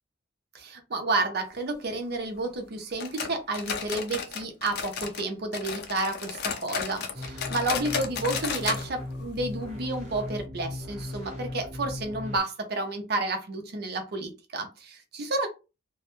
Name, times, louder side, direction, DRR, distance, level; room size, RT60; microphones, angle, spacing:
voice 1, 0.5-15.5, right 2 dB, 55° right, 0.5 m, -31 dB
sound 1, 3.0-5.3 5.5-8.9 9.1-9.2 9.6-9.7 10.3-10.4, left 6 dB, 55° left, 0.4 m, -33 dB
sound 2, 7.1-12.4, left 1 dB, 35° right, 0.9 m, -37 dB
2.2 x 2.0 x 2.9 m
head